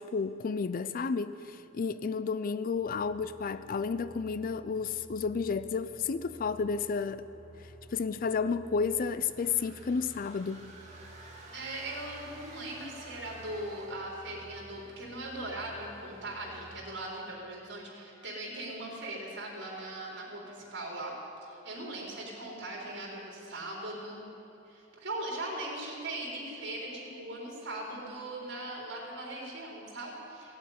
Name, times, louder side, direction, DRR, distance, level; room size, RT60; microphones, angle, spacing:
voice 1, 0.0-7.2 7.9-10.7, left 5 dB, 45° left, 0.4 m, -32 dB
sound 1, 2.7-16.8, right 1 dB, 90° right, 2.4 m, -54 dB
sound 2, 9.2-14.1, right 2 dB, 35° right, 2.8 m, -51 dB
voice 2, 11.5-21.1 21.4-24.3 24.7-30.6, right 1 dB, 65° right, 3.8 m, -40 dB
17.0 x 8.4 x 9.4 m
head